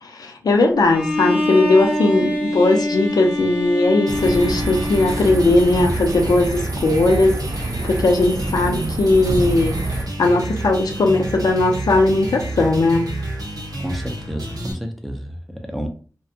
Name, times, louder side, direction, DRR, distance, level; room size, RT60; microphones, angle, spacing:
voice 1, 0.0-9.8 10.2-13.1, left 2 dB, 80° left, 3 dB, 0.5 m, -18 dB
Bowed string instrument, 0.9-5.9, left 1 dB, 15° right, 0.9 m, -25 dB
sound 1, 4.1-10.0, right 2 dB, 55° right, 0.4 m, -27 dB
sound 2, 4.1-14.7, right 1 dB, 80° right, 0.8 m, -29 dB
voice 2, 13.7-15.9, equal, ahead, 3 dB, 0.5 m, -30 dB
2.6 x 2.2 x 2.6 m, 0.41 s
wide cardioid pair, 75°, 6 cm